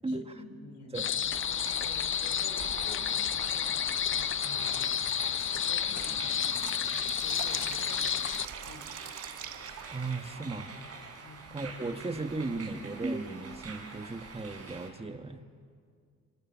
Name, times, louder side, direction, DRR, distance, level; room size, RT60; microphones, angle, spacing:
voice 1, 0.1-5.0 5.4-8.4 8.6-8.9 11.2-11.5, left 4 dB, 70° left, 7 dB, 3.6 m, -49 dB
sound 1, 0.9-8.5, left 9 dB, 45° left, 0.6 m, -31 dB
sound 2, 1.3-14.9, right 4 dB, 55° right, 5.6 m, -45 dB
Drip, 4.7-10.3, right 11 dB, 85° right, 1.3 m, -44 dB
voice 2, 9.9-10.7 11.5-15.4, right 3 dB, 20° right, 7 dB, 1.8 m, -36 dB
28.0 x 26.0 x 7.5 m, 2.1 s
cardioid pair, 90°, 30 cm